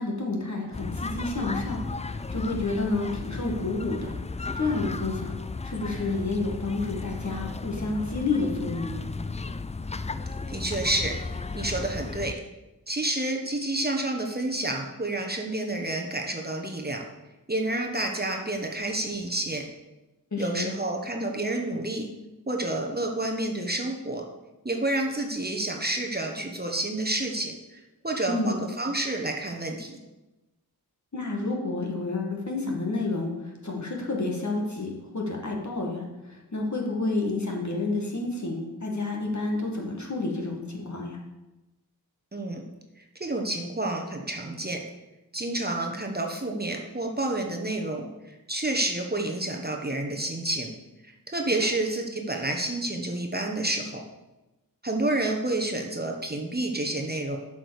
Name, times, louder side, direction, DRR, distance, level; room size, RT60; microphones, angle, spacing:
voice 1, 0.0-4.1 4.5-5.4 5.6-9.0 20.3-20.7 28.2-28.6 31.1-41.2, left 3 dB, 50° left, 0 dB, 2.0 m, -30 dB
sound 1, 0.7-12.3, left 3 dB, 20° left, 0.4 m, -34 dB
voice 2, 10.5-11.2 11.5-12.3 12.9-17.0 17.5-19.6 20.4-22.1 22.5-24.2 24.6-30.0 42.3-42.6 43.2-44.8 45.3-50.7 51.0-54.0 54.8-57.4, right 2 dB, 25° right, 1 dB, 1.2 m, -29 dB
7.8 x 5.1 x 6.6 m, 1.0 s
wide cardioid pair, 50°, 37 cm